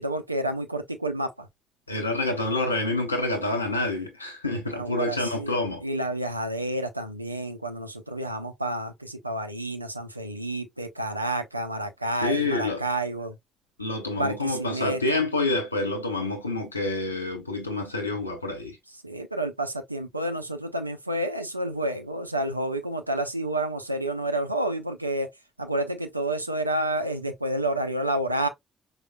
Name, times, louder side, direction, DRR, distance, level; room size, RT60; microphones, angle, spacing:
voice 1, 0.0-1.5 4.7-13.3 14.1-15.2 19.0-25.3 25.6-28.5, right 1 dB, 90° right, 0.3 m, -30 dB
voice 2, 1.9-5.8 12.2-12.8 13.8-18.8, left 2 dB, 85° left, 0.6 m, -27 dB
4.9 x 2.1 x 2.2 m
figure-of-eight pair, 45°, 0 cm